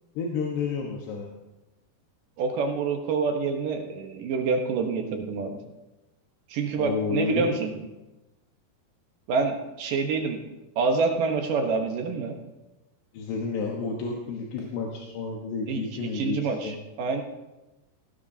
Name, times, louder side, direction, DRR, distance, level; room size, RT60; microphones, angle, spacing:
voice 1, 0.2-1.3 6.8-7.5 13.1-16.8, left 5 dB, 80° left, -1 dB, 3.4 m, -30 dB
voice 2, 2.4-5.6 6.5-7.7 9.3-10.4 10.8-12.4 15.7-15.9 16.1-17.2, right 4 dB, 65° right, 3 dB, 2.4 m, -27 dB
17.5 x 17.0 x 2.8 m, 1.0 s
omnidirectional pair, 4.8 m